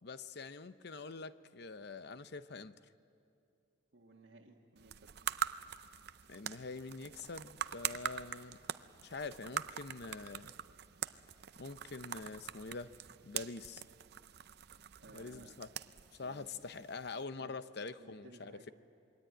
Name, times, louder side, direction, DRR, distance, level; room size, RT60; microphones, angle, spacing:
voice 1, 0.0-2.8 6.3-8.6 9.0-10.5 11.6-12.9 13.2-13.8 15.1-15.7 16.1-18.7, left 4 dB, 60° left, 12 dB, 0.8 m, -45 dB
voice 2, 3.9-5.1 15.0-15.5 16.2-16.5 17.4-17.5 18.0-18.7, right 2 dB, 75° right, -2 dB, 1.6 m, -58 dB
sound 1, 4.8-17.2, right 9 dB, 60° right, 0.6 m, -44 dB
27.0 x 22.0 x 9.2 m, 2.5 s
head